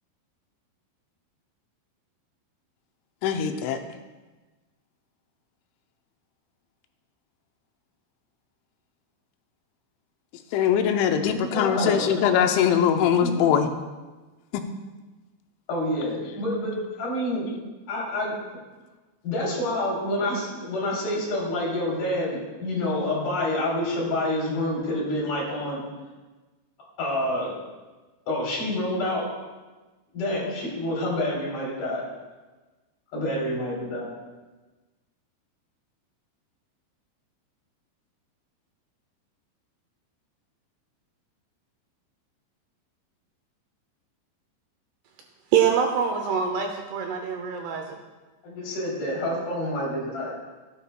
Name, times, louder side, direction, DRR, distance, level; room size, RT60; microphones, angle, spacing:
voice 1, 3.2-3.8 10.5-13.7 14.5-14.6, left 8 dB, 90° left, 6 dB, 3.2 m, -22 dB
voice 2, 11.4-12.1 13.2-13.3 15.7-17.5 17.9-18.4 19.2-25.8 27.0-27.5 28.3-29.3 30.1-32.0 33.1-34.1 48.4-50.3, left 1 dB, 55° left, -5 dB, 4.8 m, -28 dB
voice 3, 45.5-48.0, right 7 dB, 80° right, 3 dB, 2.5 m, -24 dB
16.5 x 9.9 x 2.3 m, 1.2 s
omnidirectional pair, 5.3 m